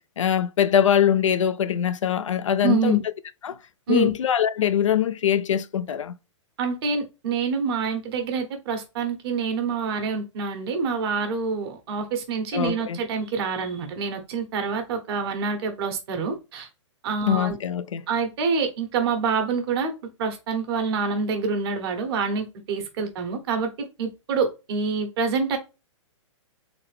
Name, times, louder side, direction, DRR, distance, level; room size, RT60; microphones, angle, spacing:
voice 1, 0.0-3.0 3.4-3.6 3.9-6.1 12.5-13.0 17.3-18.0, left 9 dB, 75° left, 0.5 m, -22 dB
voice 2, 2.6-3.0 3.9-4.1 6.6-16.7 17.0-17.6 18.1-19.9 20.2-25.6, right 5 dB, 50° right, 1.4 m, -26 dB
3.9 x 3.2 x 3.4 m
hypercardioid pair, 120°, 16 cm